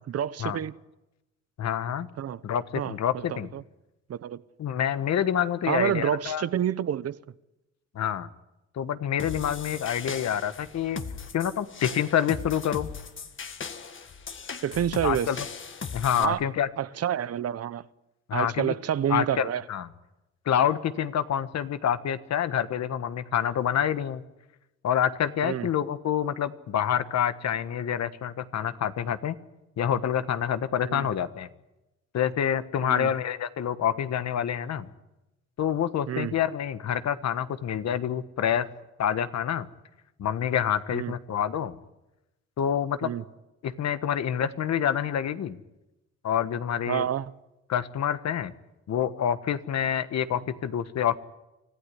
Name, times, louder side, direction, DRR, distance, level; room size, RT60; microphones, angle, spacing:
voice 1, 0.1-0.8 2.2-2.4 2.8-3.6 4.1-4.4 5.7-7.2 14.6-15.3 16.2-16.4 16.8-17.8 18.3-19.6 25.4-25.7 30.8-31.1 32.8-33.1 36.1-36.3 40.9-41.1 43.0-43.2 46.9-47.3, right 10 dB, 55° right, 0.8 m, -28 dB
voice 2, 1.6-2.1 2.4-3.5 4.6-6.5 7.9-8.3 8.7-11.0 11.3-12.9 15.0-15.4 15.9-16.7 18.3-18.7 19.1-19.9 20.4-24.2 24.8-29.3 29.8-31.5 32.1-34.9 35.6-38.7 39.0-39.7 40.2-41.8 42.6-43.1 43.6-45.6 46.2-47.1 47.7-48.5 48.9-51.2, left 9 dB, 60° left, 1.4 m, -27 dB
sound 1, 9.2-16.2, left 5 dB, 40° left, 1.8 m, -38 dB
25.5 x 15.0 x 9.9 m
cardioid pair, 90°, 30 cm